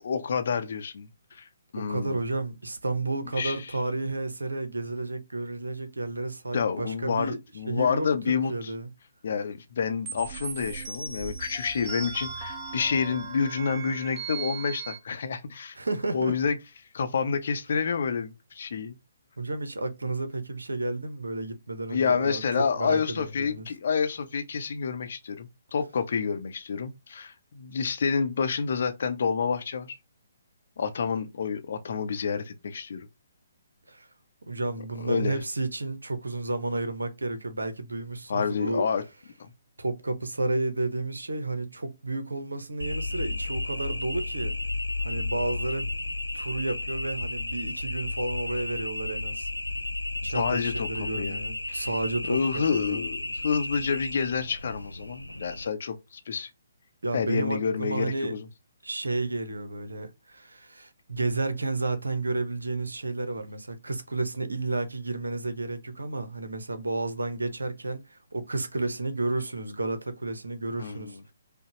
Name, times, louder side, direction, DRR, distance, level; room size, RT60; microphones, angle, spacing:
voice 1, 0.0-1.5 1.7-2.2 3.4-3.8 6.5-8.7 9.2-15.8 16.1-16.6 16.9-19.0 21.9-29.9 30.8-33.1 35.0-35.4 38.3-39.0 39.4-39.5 50.3-51.4 51.7-51.9 52.3-56.5 57.1-58.5 70.8-71.2, left 6 dB, 50° left, 0.7 m, -29 dB
voice 2, 1.8-7.4 7.7-8.9 15.7-16.3 19.4-22.4 22.8-23.7 33.9-34.1 34.5-38.8 39.8-44.5 45.0-45.9 46.3-49.5 50.2-53.0 57.0-58.3 58.8-71.3, right 2 dB, 75° right, 0.8 m, -31 dB
sound 1, 10.1-15.0, right 5 dB, 25° right, 1.2 m, -38 dB
sound 2, 42.8-55.7, left 2 dB, 85° left, 0.3 m, -33 dB
5.2 x 2.2 x 2.9 m
figure-of-eight pair, 135°, 0 cm